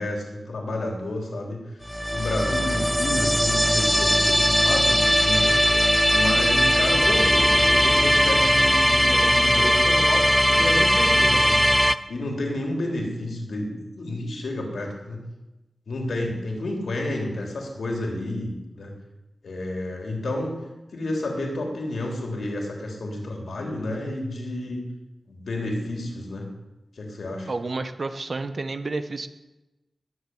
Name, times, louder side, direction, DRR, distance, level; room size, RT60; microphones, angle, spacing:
voice 1, 0.0-1.6 2.1-5.6 6.1-11.7 12.1-15.2 15.9-18.9 19.4-20.6 20.9-24.8 25.3-26.5 27.0-27.5, left 1 dB, 85° left, 1 dB, 3.5 m, -30 dB
sound 1, 1.9-11.9, equal, ahead, 0.5 m, -19 dB
voice 2, 27.5-29.3, right 3 dB, 55° right, 10 dB, 1.1 m, -30 dB
20.0 x 7.2 x 8.0 m, 1.0 s
wide cardioid pair, 105°, 0 cm